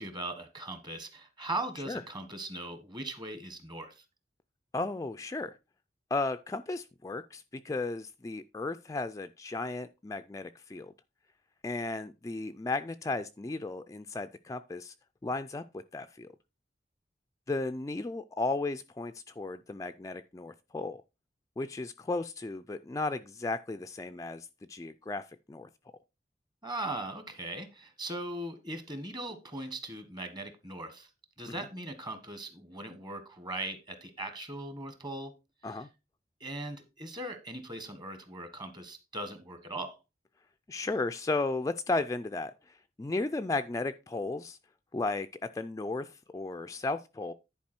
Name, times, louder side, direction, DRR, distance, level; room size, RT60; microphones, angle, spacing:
voice 1, 0.0-4.0 26.6-31.1 31.4-35.3 35.6-35.9 36.4-40.0, right 1 dB, 25° right, 1.3 m, -39 dB
voice 2, 4.7-5.5 6.1-10.9 11.6-14.9 15.2-15.6 15.9-16.3 17.5-21.0 21.6-25.2 25.5-25.7 31.4-31.5 35.6-35.9 40.7-44.6 44.9-45.3 45.5-47.3, left 3 dB, 20° left, 0.3 m, -34 dB
10.5 x 4.6 x 4.4 m
head